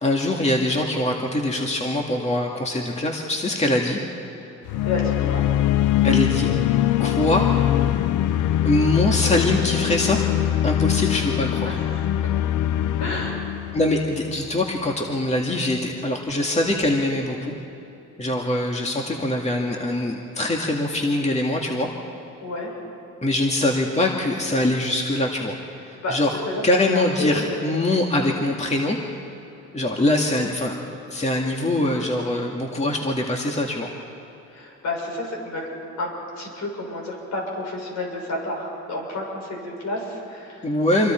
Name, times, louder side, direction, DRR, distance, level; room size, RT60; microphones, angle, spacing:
voice 1, 0.0-4.0 6.0-6.5 7.0-7.5 8.6-10.3 10.6-11.8 13.7-17.5 18.2-21.9 23.2-25.6 25.9-26.4 26.6-29.0 29.7-30.7 31.1-33.9 40.6-41.1, left 1 dB, 20° left, 0 dB, 2.1 m, -23 dB
sound 1, 4.7-14.7, left 12 dB, 85° left, 0.7 m, -22 dB
voice 2, 4.8-5.5 11.6-12.4 13.0-13.4 22.4-22.7 26.0-26.2 26.4-27.9 34.5-35.7 36.0-36.1 36.4-40.8 41.0-41.1, left 2 dB, 70° left, -1 dB, 6.4 m, -30 dB
27.0 x 23.5 x 4.5 m, 2.9 s
cardioid pair, 90°, 30 cm